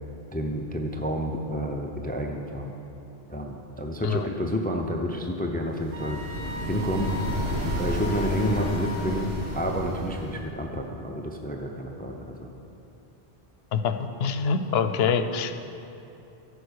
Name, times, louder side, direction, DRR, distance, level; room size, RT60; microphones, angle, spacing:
voice 1, 0.3-2.7 3.3-6.2 6.7-7.2 7.8-9.3 9.5-12.5, equal, 10° left, 2 dB, 0.5 m, -29 dB
sound 1, 5.7-10.5, equal, 90° right, 2.1 m, -32 dB
sound 2, 5.9-9.2, left 3 dB, 70° right, 1.6 m, -39 dB
voice 2, 13.7-15.7, left 6 dB, 80° left, 9 dB, 0.8 m, -25 dB
14.5 x 5.3 x 6.4 m, 2.8 s
omnidirectional pair, 1.0 m